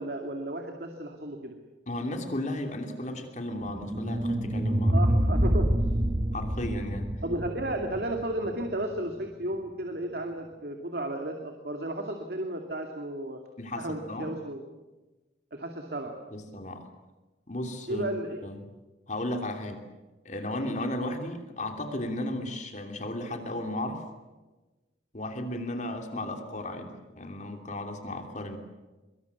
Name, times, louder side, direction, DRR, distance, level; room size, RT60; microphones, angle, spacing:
voice 1, 0.0-1.6 4.9-5.7 7.2-13.4 13.8-14.6 15.5-16.1 17.9-18.4, right 1 dB, 60° right, 4 dB, 2.6 m, -33 dB
voice 2, 1.9-4.9 6.3-7.1 13.6-14.3 16.3-16.9 17.5-18.1 18.4-18.6 19.1-19.9 20.2-24.0 25.1-28.6, left 1 dB, 45° left, 5 dB, 2.9 m, -34 dB
sound 1, 3.6-8.7, right 1 dB, 25° right, 1.2 m, -27 dB
24.5 x 23.0 x 8.3 m, 1.2 s
head